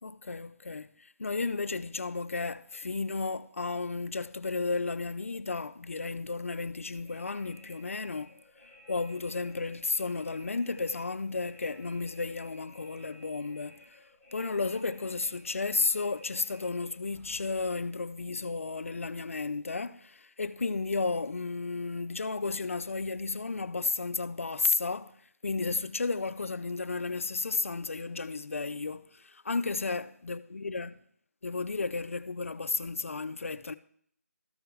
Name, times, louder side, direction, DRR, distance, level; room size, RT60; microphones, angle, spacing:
voice 1, 0.0-8.3 8.9-14.0 14.3-25.2 25.4-31.0 31.4-33.8, left 4 dB, 55° left, 0.5 m, -33 dB
sound 1, 7.0-17.9, equal, 15° right, 3.2 m, -56 dB
13.5 x 5.0 x 4.6 m
figure-of-eight pair, 175°, 9 cm